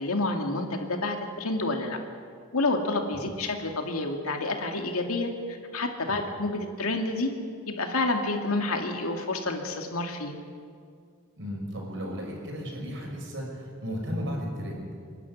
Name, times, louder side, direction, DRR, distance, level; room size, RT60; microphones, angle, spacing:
voice 1, 0.0-2.0 2.5-5.3 5.7-7.3 7.7-10.3, left 2 dB, 85° left, 3 dB, 2.4 m, -29 dB
voice 2, 11.4-14.9, equal, 60° right, 0 dB, 5.9 m, -34 dB
27.5 x 12.0 x 9.7 m, 2.2 s
head